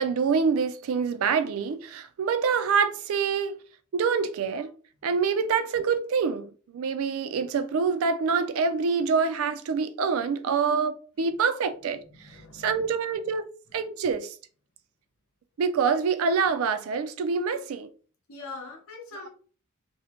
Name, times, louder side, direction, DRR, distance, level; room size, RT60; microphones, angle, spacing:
voice 1, 0.0-3.6 3.9-4.7 5.0-12.0 12.5-14.4 15.6-17.9, right 5 dB, 65° right, 0.3 m, -26 dB
voice 2, 11.9-12.9 18.3-19.3, left 3 dB, 65° left, 0.7 m, -43 dB
2.7 x 2.1 x 2.8 m
head